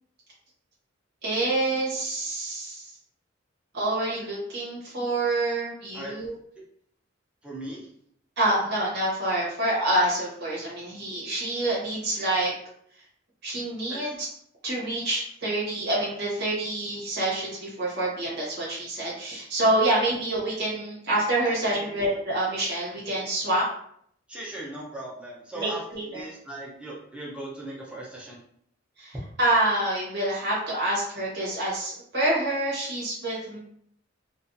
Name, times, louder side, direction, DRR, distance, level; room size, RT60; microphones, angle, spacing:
voice 1, 1.2-2.9 3.7-6.3 8.4-12.5 13.4-14.3 14.6-23.6 25.5-26.2 29.0-33.6, right 1 dB, 60° right, -6 dB, 1.1 m, -27 dB
voice 2, 7.4-7.9 13.9-14.1 21.8-21.9 24.3-28.4, right 1 dB, 5° right, -5 dB, 0.7 m, -38 dB
2.4 x 2.4 x 2.6 m, 0.67 s
head